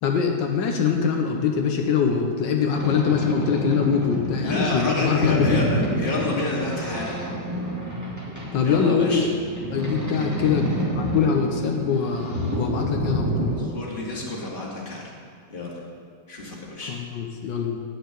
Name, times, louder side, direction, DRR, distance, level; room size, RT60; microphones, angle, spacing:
voice 1, 0.0-5.6 8.5-9.3 9.7-13.5 16.9-17.8, left 6 dB, 80° left, 2 dB, 1.6 m, -23 dB
Boat Water vehicle, 2.7-13.6, right 1 dB, 10° right, 2.1 m, -29 dB
voice 2, 4.4-7.1 8.6-9.3 13.6-15.1 15.5-15.8 16.3-16.9, left 2 dB, 30° left, -4 dB, 2.2 m, -29 dB
10.0 x 6.6 x 8.1 m, 2.2 s
omnidirectional pair, 1.9 m